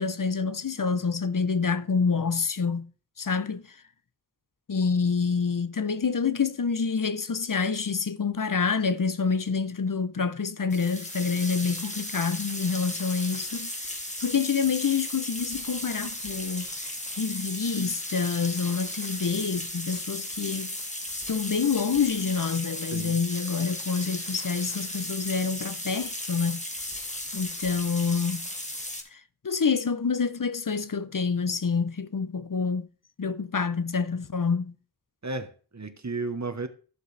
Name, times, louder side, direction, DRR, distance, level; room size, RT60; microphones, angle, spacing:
voice 1, 0.0-2.9 3.2-3.8 4.7-13.7 14.2-16.7 17.1-20.7 21.3-26.8 27.3-28.5 29.1-32.9 33.2-34.7, left 5 dB, 55° left, 0.7 m, -27 dB
sound 1, 10.7-29.0, left 1 dB, 20° left, 1.9 m, -35 dB
voice 2, 22.8-23.2 35.2-36.7, right 3 dB, 45° right, 1.1 m, -33 dB
14.0 x 7.4 x 3.3 m
wide cardioid pair, 45°, 38 cm